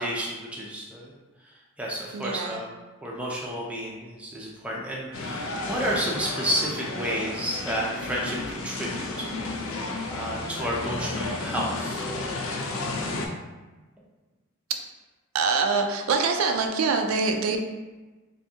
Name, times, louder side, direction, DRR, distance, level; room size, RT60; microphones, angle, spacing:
voice 1, 0.0-2.7 3.0-9.3 10.1-12.5, equal, 5° right, -4 dB, 0.4 m, -31 dB
voice 2, 2.1-2.6 15.3-17.6, right 4 dB, 75° right, 4 dB, 0.4 m, -24 dB
sound 1, 5.1-13.3, left 2 dB, 80° left, 0.5 m, -32 dB
3.4 x 2.6 x 2.7 m, 1.2 s
head